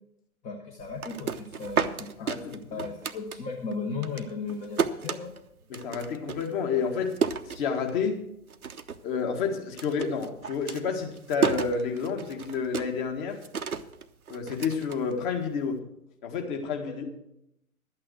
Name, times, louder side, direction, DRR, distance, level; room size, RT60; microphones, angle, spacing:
voice 1, 0.4-5.3 16.8-17.0, left 4 dB, 15° left, 3 dB, 0.9 m, -36 dB
sound 1, 0.8-3.7 4.0-8.2 8.5-9.1 9.4-15.6, right 6 dB, 75° right, 0.9 m, -32 dB
voice 2, 2.2-2.5 2.8-2.9 5.7-7.2 7.5-8.2 9.0-13.4 14.3-15.8 16.2-17.0, left 5 dB, 35° left, 3 dB, 1.8 m, -30 dB
12.0 x 8.7 x 6.3 m, 0.80 s
figure-of-eight pair, 120°, 43 cm